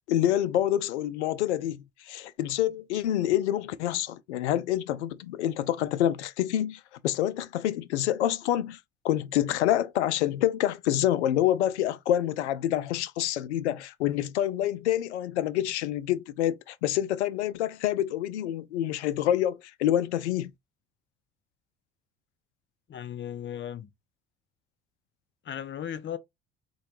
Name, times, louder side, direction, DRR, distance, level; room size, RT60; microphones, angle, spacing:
voice 1, 0.1-8.8 9.0-20.5, left 12 dB, 80° left, 0.5 m, -27 dB
voice 2, 22.9-23.9 25.4-26.2, left 10 dB, 35° left, 0.7 m, -36 dB
4.3 x 2.3 x 4.3 m
figure-of-eight pair, 55°, 34 cm